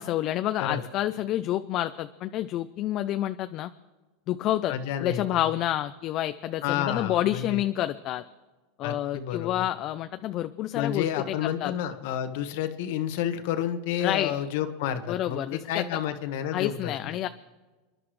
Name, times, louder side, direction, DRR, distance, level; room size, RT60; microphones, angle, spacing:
voice 1, 0.0-3.7 4.3-4.7 5.0-8.2 8.8-11.7 14.0-14.3 15.1-15.8 16.5-17.3, left 13 dB, 45° left, 10 dB, 0.5 m, -29 dB
voice 2, 4.7-5.4 6.6-7.6 8.8-9.7 10.7-17.2, left 10 dB, 70° left, 9 dB, 1.4 m, -30 dB
30.0 x 11.0 x 3.2 m, 1.2 s
supercardioid pair, 125°, 0 cm